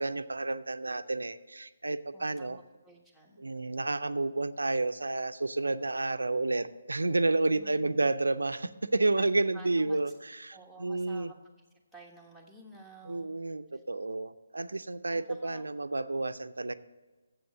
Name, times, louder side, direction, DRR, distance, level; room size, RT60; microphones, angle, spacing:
voice 1, 0.0-2.6 3.4-10.1 10.4-11.3 13.0-16.7, right 2 dB, 85° right, 12 dB, 0.4 m, -30 dB
voice 2, 2.1-3.5 7.5-8.1 9.1-10.1 10.5-11.3 11.9-13.4 13.7-13.8 15.1-15.7, right 2 dB, 5° left, 0 dB, 1.2 m, -52 dB
7.7 x 6.7 x 7.3 m, 1.3 s
figure-of-eight pair, 145°, 0 cm